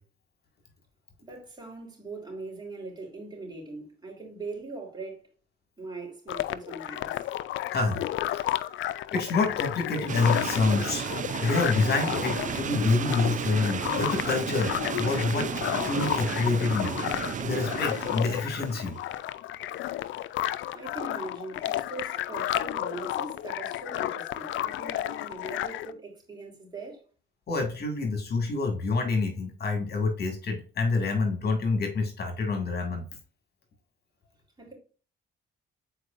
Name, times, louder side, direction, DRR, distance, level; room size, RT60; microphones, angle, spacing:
voice 1, 1.2-5.3 5.8-7.2 19.7-19.9 20.7-27.0 34.6-34.7, right 3 dB, 20° right, 3.5 m, -41 dB
sound 1, 6.3-25.9, left 13 dB, 75° left, 0.4 m, -32 dB
voice 2, 7.7-8.0 8.3-8.5 9.1-11.1 11.4-14.7 15.0-15.5 15.9-16.9 17.2-19.0 27.5-33.0, left 3 dB, 55° left, 2.0 m, -27 dB
sound 2, 10.1-19.1, right 8 dB, 40° right, 0.5 m, -33 dB
8.0 x 4.6 x 2.5 m
cardioid pair, 90°, 20 cm